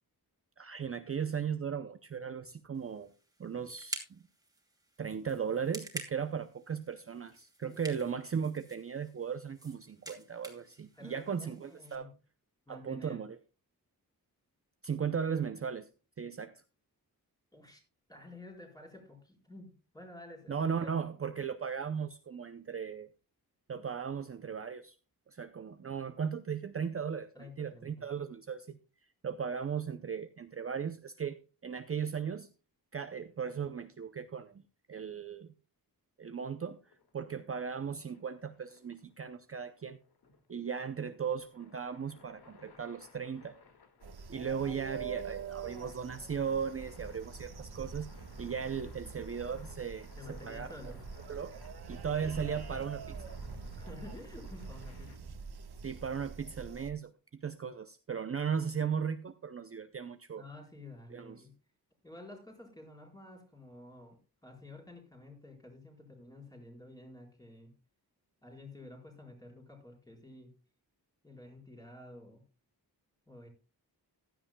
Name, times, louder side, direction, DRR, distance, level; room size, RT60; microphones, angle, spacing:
voice 1, 0.6-3.1 3.4-4.2 5.0-12.1 12.7-13.4 14.8-15.9 16.2-16.6 20.5-23.1 23.7-25.0 25.3-28.8 29.2-32.5 32.9-34.6 34.9-35.5 36.2-36.8 37.1-40.0 40.5-43.6 44.3-48.1 48.4-50.7 51.3-51.6 51.9-53.2 55.8-60.4 61.1-61.4, right 7 dB, 35° right, 0.6 m, -37 dB
sound 1, 2.7-11.9, right 2 dB, 10° right, 2.7 m, -49 dB
voice 2, 10.9-12.2 12.7-13.2 17.5-17.8 18.1-21.1 27.3-28.0 50.2-51.1 53.7-55.3 60.3-61.6 62.0-67.7 68.4-70.6 71.2-72.4 73.3-73.5, left 2 dB, 10° left, 4.5 m, -51 dB
sound 2, 36.8-55.2, left 4 dB, 85° left, 2.0 m, -59 dB
sound 3, 44.0-56.9, right 5 dB, 85° right, 1.3 m, -45 dB
15.5 x 12.5 x 2.2 m
wide cardioid pair, 175°, 38 cm